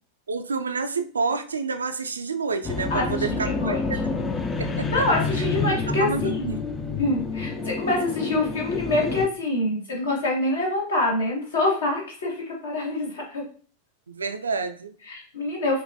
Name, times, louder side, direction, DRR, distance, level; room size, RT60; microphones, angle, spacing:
voice 1, 0.3-4.0 4.6-5.0 6.0-6.6 14.1-14.9, right 4 dB, 75° right, 9 dB, 0.3 m, -29 dB
sound 1, 2.6-9.3, left 3 dB, 20° left, 0.3 m, -28 dB
voice 2, 2.9-3.8 4.8-6.5 7.0-13.4 15.0-15.8, left 2 dB, 65° left, -2 dB, 1.3 m, -26 dB
5.3 x 2.1 x 2.6 m, 0.42 s
figure-of-eight pair, 90°, 0 cm